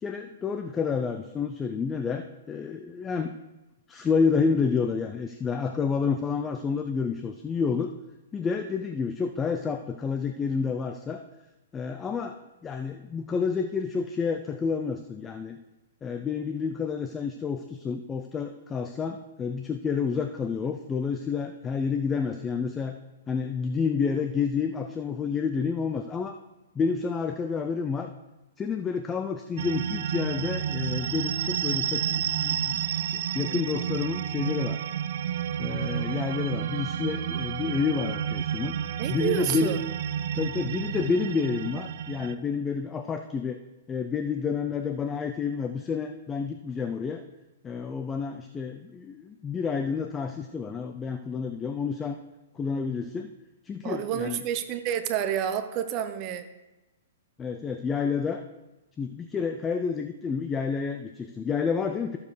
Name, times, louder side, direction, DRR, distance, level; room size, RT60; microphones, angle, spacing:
voice 1, 0.0-3.3 3.9-7.9 8.3-11.2 11.7-12.4 12.6-15.6 16.0-23.0 23.3-26.4 26.7-28.1 28.6-34.8 35.6-38.8 39.1-39.8 40.3-43.6 43.9-47.2 47.6-52.2 52.5-53.3 53.6-54.4 57.4-58.4 59.0-62.2, left 5 dB, 15° left, 7 dB, 0.5 m, -29 dB
sound 1, 29.6-42.4, right 9 dB, 60° right, 0.4 m, -30 dB
voice 2, 39.0-39.8 53.8-56.5, right 10 dB, 35° right, 10 dB, 0.8 m, -29 dB
14.0 x 7.1 x 3.3 m, 1.0 s
hypercardioid pair, 135°, 0 cm